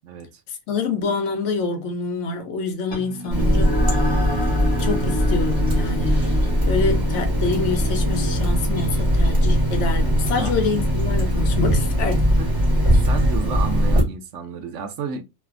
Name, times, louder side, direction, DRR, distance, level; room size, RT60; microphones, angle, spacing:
voice 1, 0.0-0.4 10.4-10.6 12.4-12.5 13.0-15.2, right 6 dB, 70° right, 0.8 m, -31 dB
voice 2, 0.7-3.8 4.8-6.2 6.6-12.3, left 4 dB, 65° left, 0.9 m, -26 dB
sound 1, 2.9-11.8, left 1 dB, 25° left, 0.8 m, -32 dB
Water tap faucet, 3.3-14.0, equal, 20° right, 0.9 m, -20 dB
3.2 x 2.0 x 2.3 m
omnidirectional pair, 1.4 m